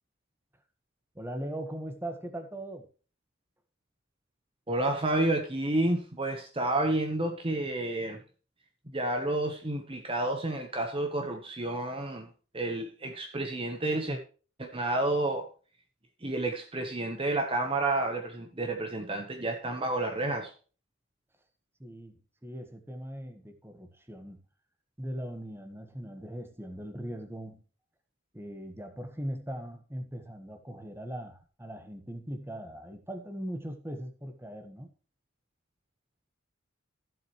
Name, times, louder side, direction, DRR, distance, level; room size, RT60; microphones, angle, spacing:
voice 1, 1.1-2.9 21.8-24.4 25.0-27.6 28.3-34.9, right 1 dB, 10° right, 1.5 m, -40 dB
voice 2, 4.7-8.2 8.9-12.3 12.5-14.2 14.6-15.5 16.2-20.5, right 2 dB, 30° right, 1.2 m, -30 dB
14.5 x 7.8 x 3.2 m
head